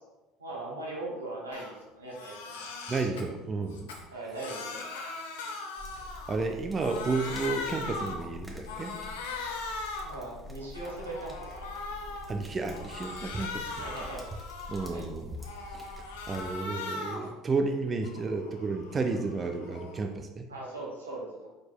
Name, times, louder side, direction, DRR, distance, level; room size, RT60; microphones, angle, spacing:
voice 1, 0.4-2.7 4.1-4.8 10.0-11.5 11.9-12.0 13.8-14.2 14.9-15.1 20.5-21.5, right 2 dB, 90° right, -3 dB, 1.0 m, -39 dB
Crying sobbing, 1.5-1.7 2.1-3.2 3.7-6.5 6.7-8.3 8.7-10.2 10.6-12.3 12.7-15.0 15.4-17.3 17.7-20.1, left 3 dB, 75° left, 0.6 m, -39 dB
voice 2, 2.9-3.9 6.3-9.0 12.3-13.9 14.7-15.4 15.7-15.9 16.3-20.5, right 3 dB, 30° right, 5 dB, 0.4 m, -32 dB
sound 1, 5.8-16.5, left 2 dB, 5° right, 1.2 m, -47 dB
5.1 x 4.4 x 2.2 m, 1.1 s
hypercardioid pair, 65°, 0 cm